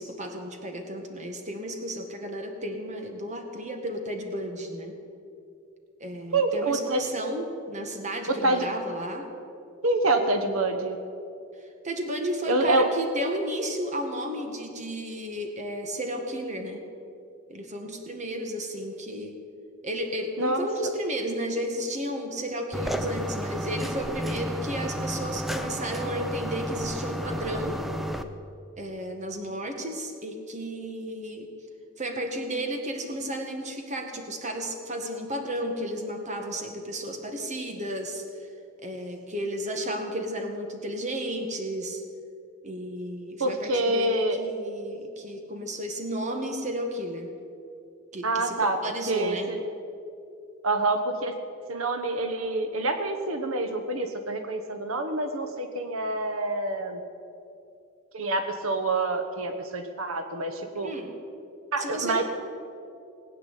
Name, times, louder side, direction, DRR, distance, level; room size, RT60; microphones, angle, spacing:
voice 1, 0.0-4.9 6.0-9.3 11.8-16.8 17.5-19.3 19.8-27.8 28.8-31.5 32.0-38.2 38.8-42.0 42.6-47.3 48.1-48.6 48.8-49.5 60.8-61.1 61.8-62.2, equal, 35° right, 4 dB, 1.8 m, -33 dB
voice 2, 6.3-7.0 8.3-8.7 9.8-11.0 12.5-12.9 20.4-20.7 43.4-44.4 48.2-48.8 49.1-49.6 50.6-51.3 51.7-57.0 58.1-60.9 61.7-62.2, right 2 dB, 85° right, 7 dB, 1.2 m, -26 dB
sound 1, 22.7-28.2, equal, ahead, 0.6 m, -32 dB
19.5 x 9.0 x 8.4 m, 2.6 s
head